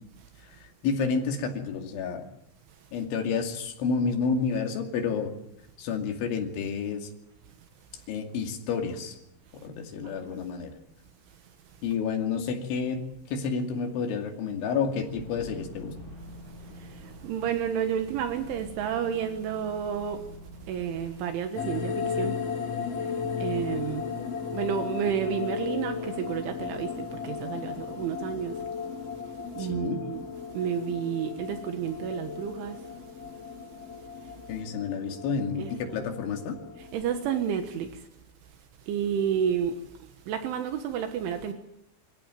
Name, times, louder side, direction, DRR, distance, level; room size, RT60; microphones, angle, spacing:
voice 1, 0.8-2.2 2.9-5.3 5.8-7.1 8.1-9.2 9.6-10.7 11.8-13.0 13.3-15.9 29.6-30.0 34.5-36.6, left 5 dB, 75° left, 4.8 m, -30 dB
sound 1, 15.0-21.3, equal, 15° right, 8.0 m, -46 dB
voice 2, 16.3-20.2 20.7-22.4 22.8-24.1 24.5-28.6 29.6-30.2 30.5-32.8 33.3-33.4 34.2-34.3 35.6-35.7 36.8-38.1 38.9-41.5, right 8 dB, 80° right, 3.8 m, -31 dB
sound 2, 21.5-37.4, left 6 dB, 45° left, 2.2 m, -35 dB
26.5 x 16.0 x 9.1 m
omnidirectional pair, 5.6 m